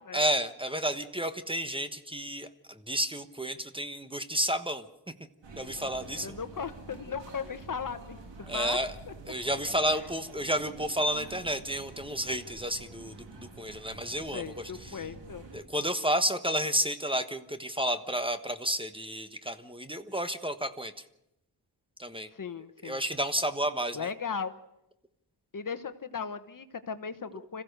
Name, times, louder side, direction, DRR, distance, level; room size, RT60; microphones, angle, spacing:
voice 1, 0.1-4.9 5.6-6.3 8.5-8.9 9.3-15.0 15.5-20.9 22.0-22.3 22.8-24.1, right 1 dB, 10° right, 9 dB, 1.3 m, -31 dB
sound 1, 5.4-15.6, right 3 dB, 90° right, 3.3 m, -48 dB
voice 2, 6.2-8.8 9.1-9.2 9.9-10.1 14.3-15.5 22.3-23.0 23.9-24.5 25.5-27.6, left 6 dB, 50° left, 11 dB, 1.2 m, -37 dB
26.0 x 15.5 x 6.7 m, 0.86 s
cardioid pair, 75°, 42 cm